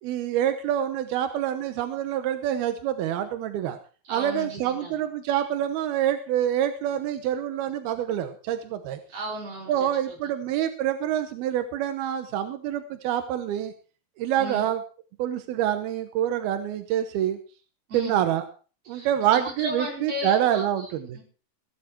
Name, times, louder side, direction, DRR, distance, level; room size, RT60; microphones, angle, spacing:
voice 1, 0.0-3.8 4.1-9.0 9.7-13.7 14.2-14.8 15.2-17.4 17.9-18.4 18.9-21.2, right 11 dB, 85° right, 9 dB, 3.0 m, -26 dB
voice 2, 4.0-4.9 9.1-10.2 14.4-14.7 17.9-18.2 18.9-21.2, right 1 dB, 40° right, -1 dB, 5.7 m, -35 dB
16.5 x 11.0 x 4.5 m, 0.37 s
omnidirectional pair, 4.3 m